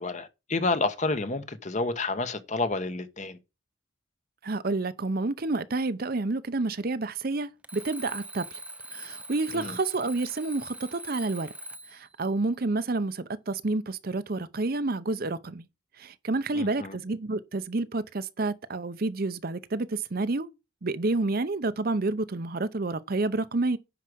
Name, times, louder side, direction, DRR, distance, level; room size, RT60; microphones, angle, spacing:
voice 1, 0.0-3.4 9.5-9.7 16.5-17.0, left 3 dB, 40° left, 1.0 m, -29 dB
voice 2, 4.4-8.6 8.9-11.5 11.9-15.7 16.0-20.5 20.8-23.8, right 2 dB, 50° right, 0.7 m, -29 dB
Alarm, 7.6-12.1, right 2 dB, 5° right, 0.5 m, -42 dB
10.0 x 4.8 x 6.2 m
head